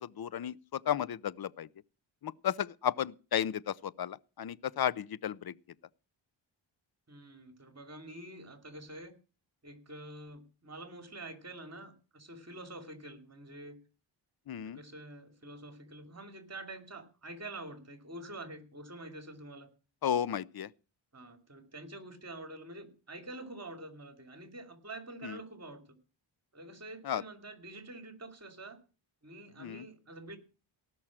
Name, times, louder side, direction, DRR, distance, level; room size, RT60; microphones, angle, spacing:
voice 1, 0.0-1.7 2.2-5.5 14.5-14.8 20.0-20.7 25.2-25.4 27.0-27.2 29.6-29.8, left 9 dB, 50° left, 0.6 m, -33 dB
voice 2, 7.1-9.2 9.6-13.8 14.6-19.7 21.1-26.0 26.5-28.8 29.2-30.4, right 2 dB, 30° right, 2.7 m, -47 dB
18.0 x 6.3 x 7.3 m
wide cardioid pair, 95°, 49 cm